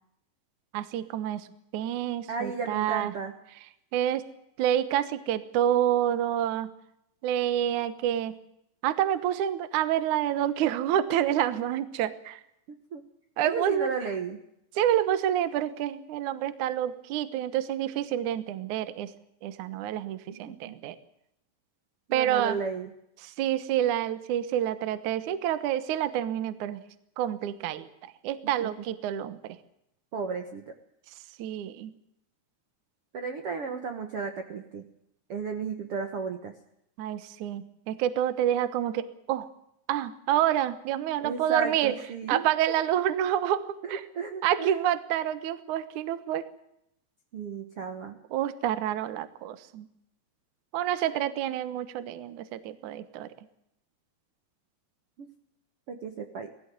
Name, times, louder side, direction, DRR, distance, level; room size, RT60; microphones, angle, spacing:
voice 1, 0.7-1.5 1.7-3.1 3.9-4.2 4.6-6.7 7.2-8.4 8.8-12.4 13.4-13.9 14.8-19.1 19.4-21.0 22.1-22.6 23.2-26.8 27.2-29.6 31.4-31.9 37.0-39.5 39.9-41.9 42.3-44.0 44.4-46.5 48.3-49.9 50.7-53.3, right 11 dB, 65° right, 13 dB, 2.0 m, -28 dB
voice 2, 2.3-3.3 12.7-13.0 13.4-14.4 20.5-20.8 22.1-22.9 28.6-28.7 30.1-30.7 33.1-34.8 35.3-36.5 41.2-42.4 43.8-44.7 47.3-48.2 55.2-55.3 55.9-56.5, right 5 dB, 90° right, 6 dB, 1.2 m, -34 dB
19.0 x 16.0 x 9.4 m, 0.78 s
omnidirectional pair, 5.0 m